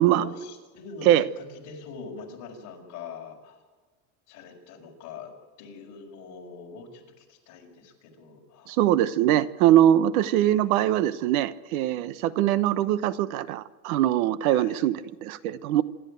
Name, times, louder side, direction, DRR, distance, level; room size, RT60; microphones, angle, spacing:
voice 1, 0.1-3.6 4.3-5.3 5.6-8.8 10.4-10.9 14.5-14.9, left 4 dB, 40° left, 0 dB, 6.1 m, -43 dB
voice 2, 8.7-15.8, right 12 dB, 65° right, 15 dB, 1.1 m, -22 dB
27.0 x 12.5 x 9.2 m, 1.3 s
supercardioid pair, 165°, 45 cm